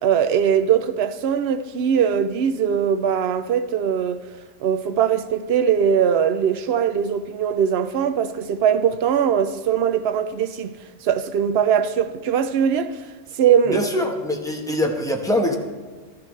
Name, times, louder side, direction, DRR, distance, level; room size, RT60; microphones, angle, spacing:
voice 1, 0.0-4.2 4.6-10.7 11.0-13.0 13.4-13.8, right 8 dB, 65° right, 0.7 m, -21 dB
voice 2, 13.7-15.6, left 1 dB, 5° left, 1.0 m, -23 dB
13.0 x 13.0 x 3.2 m
omnidirectional pair, 1.3 m